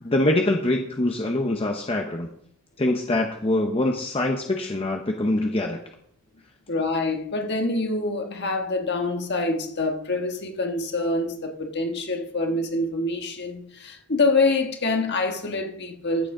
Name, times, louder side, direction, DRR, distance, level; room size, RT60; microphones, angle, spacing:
voice 1, 0.0-2.3 2.8-5.8, left 1 dB, 25° left, 0.8 m, -24 dB
voice 2, 6.7-16.3, left 2 dB, 50° left, 1.5 m, -26 dB
14.5 x 7.7 x 3.8 m
head